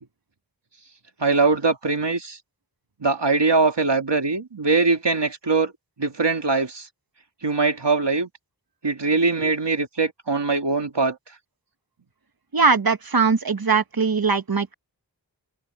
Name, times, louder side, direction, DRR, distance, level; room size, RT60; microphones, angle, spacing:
voice 1, 1.2-2.4 3.0-5.7 6.0-6.9 7.4-8.3 8.8-11.2, right 3 dB, 85° right, 2.2 m, -22 dB
voice 2, 12.5-14.7, right 5 dB, 60° right, 1.2 m, -20 dB
wide cardioid pair, 45°, 41 cm